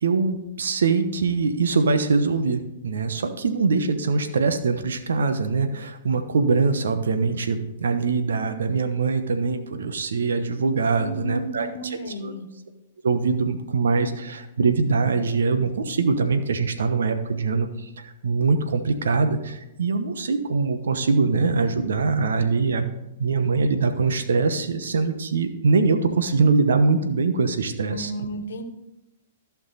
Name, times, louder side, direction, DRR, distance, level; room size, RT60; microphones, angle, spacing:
voice 1, 0.0-12.3 13.0-28.1, right 4 dB, 70° right, 8 dB, 1.0 m, -23 dB
voice 2, 11.0-12.5 27.9-28.6, left 1 dB, 65° left, 7 dB, 1.3 m, -33 dB
14.5 x 5.9 x 4.1 m, 0.90 s
figure-of-eight pair, 110°, 0 cm